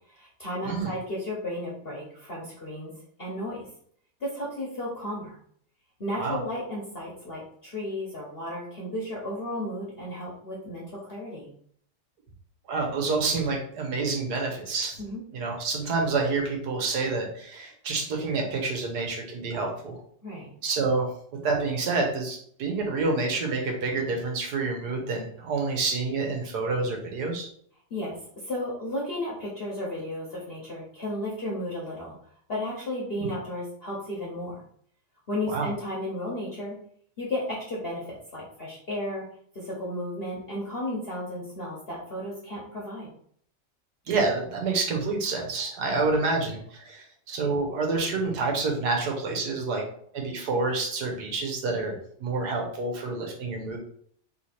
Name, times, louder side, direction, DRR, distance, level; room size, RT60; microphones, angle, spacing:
voice 1, 0.1-2.9 3.2-3.6 4.2-5.4 6.0-11.5 15.0-15.2 20.2-20.5 27.9-32.1 32.5-34.6 35.3-36.7 37.2-39.2 39.5-43.1, left 1 dB, 40° left, -5 dB, 1.1 m, -34 dB
voice 2, 12.7-15.0 15.3-20.0 20.6-21.1 21.4-27.5 33.2-33.3 35.5-35.7 44.1-49.8 50.1-53.8, right 3 dB, 70° right, 1 dB, 1.5 m, -28 dB
3.3 x 3.2 x 4.2 m, 0.62 s
omnidirectional pair, 1.8 m